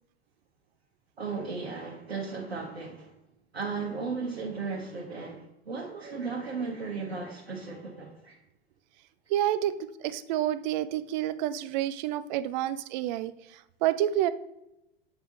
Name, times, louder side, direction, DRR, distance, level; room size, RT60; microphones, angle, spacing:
voice 1, 1.2-3.1 3.5-8.4, right 4 dB, 85° right, 1.0 m, -35 dB
voice 2, 9.3-14.3, right 12 dB, 45° right, 0.5 m, -29 dB
8.1 x 3.5 x 3.8 m
figure-of-eight pair, 90°, 31 cm